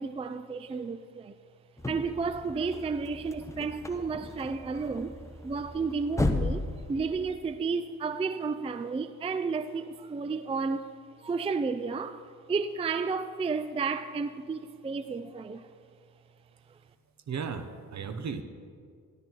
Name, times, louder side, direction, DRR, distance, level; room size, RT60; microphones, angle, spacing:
voice 1, 0.0-1.3 1.9-5.1 5.4-10.9 11.2-15.7, right 4 dB, 20° right, 0.4 m, -32 dB
sound 1, 1.8-7.6, left 2 dB, 10° left, 0.8 m, -35 dB
voice 2, 17.3-18.4, right 6 dB, 55° right, 1.0 m, -35 dB
12.5 x 12.5 x 4.5 m
cardioid pair, 100°, 33 cm